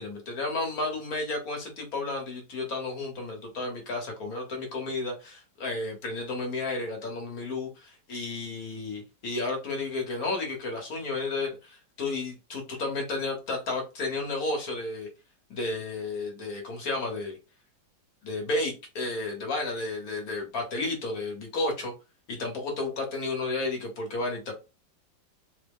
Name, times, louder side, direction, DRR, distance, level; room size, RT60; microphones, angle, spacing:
voice 1, 0.0-15.1 15.5-17.4 18.2-21.9 22.3-24.5, left 2 dB, 55° left, 1.4 m, -32 dB
3.8 x 2.1 x 3.5 m
omnidirectional pair, 1.9 m